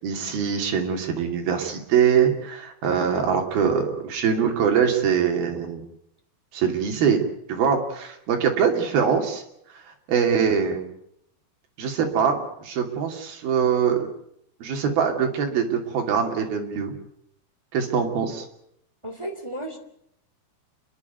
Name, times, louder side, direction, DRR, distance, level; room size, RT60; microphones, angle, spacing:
voice 1, 0.0-5.8 6.5-7.2 7.5-9.4 9.7-10.9 11.8-14.1 14.6-16.9 17.7-18.5, right 7 dB, 60° right, 3 dB, 4.4 m, -23 dB
voice 2, 19.0-19.8, right 1 dB, 10° right, 3 dB, 1.7 m, -33 dB
29.0 x 11.5 x 9.4 m, 0.74 s
omnidirectional pair, 4.9 m